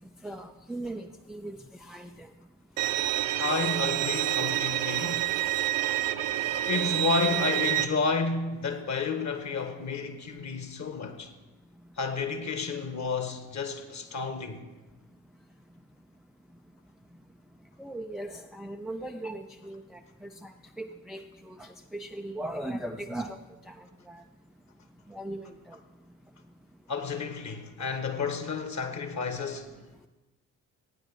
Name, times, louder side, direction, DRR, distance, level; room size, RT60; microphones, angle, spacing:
voice 1, 0.2-2.3 5.0-5.1 17.8-21.2 21.5-23.4 23.7-24.2 25.1-25.8, right 1 dB, ahead, 0.4 m, -39 dB
Bowed string instrument, 2.8-7.8, right 14 dB, 60° right, 0.9 m, -28 dB
voice 2, 3.4-5.3 6.6-11.3 12.0-14.6 26.9-29.7, left 4 dB, 35° left, 1.5 m, -31 dB
15.0 x 9.7 x 4.4 m
figure-of-eight pair, 45°, 49 cm